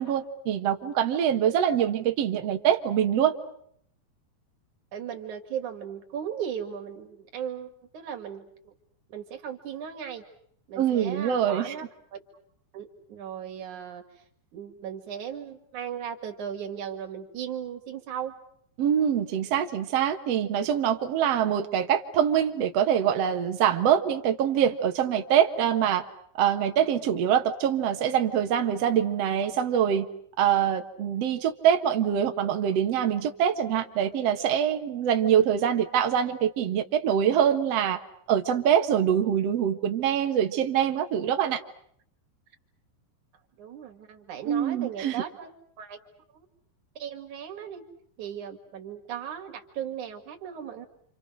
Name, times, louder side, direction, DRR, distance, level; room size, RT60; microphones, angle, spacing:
voice 1, 0.0-3.3 10.8-11.7 18.8-26.0 26.4-30.1 30.4-38.0 38.3-41.6 44.4-45.2, right 9 dB, 75° right, 5 dB, 1.5 m, -24 dB
voice 2, 4.9-8.7 9.1-10.2 10.7-11.9 12.1-12.2 12.7-14.2 14.5-18.3 43.6-45.5 45.8-46.0 46.3-46.5 47.0-47.8 48.2-50.9, right 8 dB, 45° right, 5 dB, 3.4 m, -37 dB
28.5 x 28.5 x 6.5 m, 0.68 s
omnidirectional pair, 5.3 m